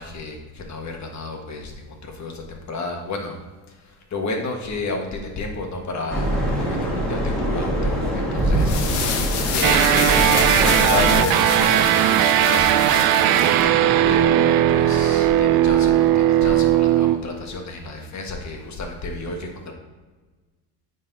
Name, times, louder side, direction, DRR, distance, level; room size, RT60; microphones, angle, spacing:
voice 1, 0.0-3.4 4.1-9.1 9.5-19.7, left 3 dB, 40° left, 2 dB, 1.5 m, -31 dB
sound 1, 6.1-11.1, right 1 dB, ahead, 2.2 m, -23 dB
sound 2, 8.5-13.6, left 6 dB, 80° left, 1.2 m, -28 dB
sound 3, 9.6-17.2, right 12 dB, 55° right, 0.5 m, -18 dB
8.7 x 3.9 x 4.1 m, 1.3 s
supercardioid pair, 105°, 45 cm